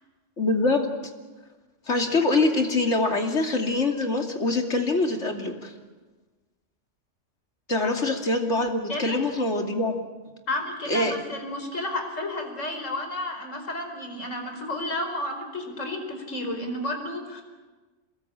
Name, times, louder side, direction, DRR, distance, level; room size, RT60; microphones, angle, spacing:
voice 1, 0.4-0.9 1.9-5.7 7.7-10.0 10.9-11.2, left 2 dB, 65° left, 3 dB, 3.1 m, -24 dB
voice 2, 10.5-17.4, left 1 dB, 80° left, 4 dB, 5.2 m, -31 dB
26.5 x 21.0 x 8.9 m, 1.2 s
omnidirectional pair, 1.3 m